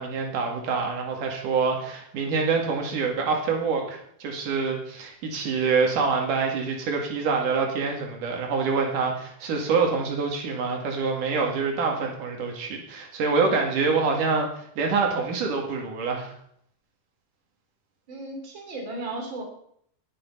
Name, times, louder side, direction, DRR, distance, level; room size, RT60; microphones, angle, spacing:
voice 1, 0.0-16.3, right 4 dB, 85° right, 1 dB, 3.8 m, -26 dB
voice 2, 18.1-19.4, right 2 dB, 35° right, 1 dB, 3.8 m, -35 dB
20.0 x 7.1 x 5.6 m, 0.67 s
omnidirectional pair, 3.6 m